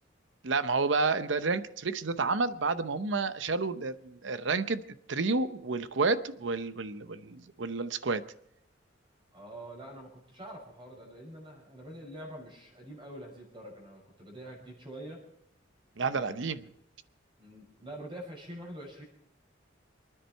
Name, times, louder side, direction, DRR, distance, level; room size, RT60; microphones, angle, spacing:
voice 1, 0.4-4.8 5.1-8.2 16.0-16.6, right 4 dB, 70° right, 12 dB, 0.8 m, -30 dB
voice 2, 9.3-15.2 16.1-16.5 17.4-19.0, right 1 dB, 25° right, -1 dB, 6.3 m, -45 dB
27.5 x 9.9 x 4.6 m, 0.73 s
head